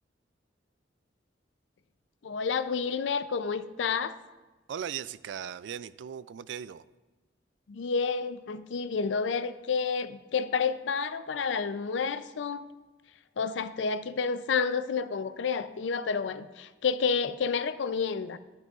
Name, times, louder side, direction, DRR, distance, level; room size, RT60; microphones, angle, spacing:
voice 1, 2.2-4.1 7.7-12.6 13.4-18.4, left 5 dB, 85° left, 13 dB, 0.4 m, -30 dB
voice 2, 4.7-6.8, right 8 dB, 80° right, 17 dB, 0.3 m, -38 dB
12.0 x 10.5 x 2.4 m, 1.2 s
head